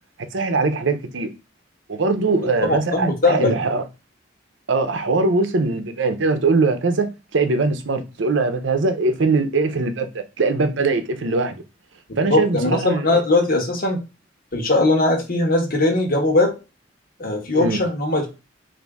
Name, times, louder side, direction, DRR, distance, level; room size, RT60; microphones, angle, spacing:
voice 1, 0.3-1.3 1.9-3.8 4.7-10.1 10.4-11.6 12.2-13.2 17.6-17.8, right 3 dB, 75° right, 0.7 m, -21 dB
voice 2, 2.7-3.5 12.3-14.0 14.5-16.5 17.2-18.3, left 2 dB, 50° left, 1.1 m, -19 dB
4.0 x 2.7 x 3.5 m
head